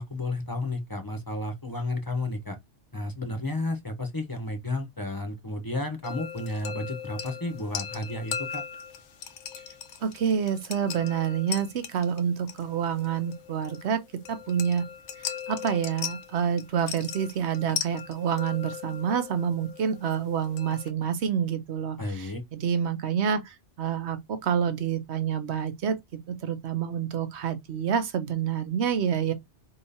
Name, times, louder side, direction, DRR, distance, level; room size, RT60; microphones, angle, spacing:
voice 1, 0.0-2.6 2.9-8.6 22.0-22.4, left 2 dB, 20° left, 0.8 m, -32 dB
sound 1, 6.0-20.9, left 8 dB, 70° left, 0.9 m, -39 dB
voice 2, 10.0-14.0 14.3-14.8 15.5-26.0 26.3-29.3, right 8 dB, 65° right, 1.1 m, -28 dB
4.4 x 3.6 x 2.7 m
omnidirectional pair, 1.3 m